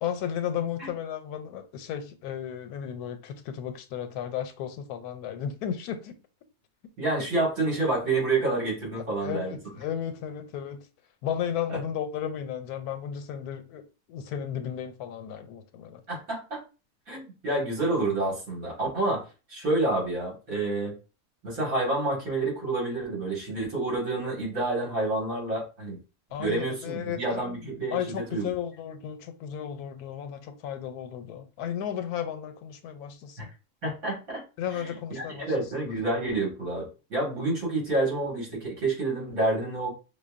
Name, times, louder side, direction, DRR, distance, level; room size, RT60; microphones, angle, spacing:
voice 1, 0.0-6.2 9.2-10.9 11.2-13.8 14.1-16.0 26.3-33.5 34.6-35.5, left 9 dB, 90° left, 1.1 m, -34 dB
voice 2, 7.0-9.5 11.7-11.8 16.1-16.6 17.1-20.9 21.4-26.0 26.4-28.5 33.4-33.5 33.8-34.4 34.7-39.9, right 2 dB, 65° right, 2.2 m, -28 dB
5.2 x 2.2 x 2.4 m
omnidirectional pair, 1.6 m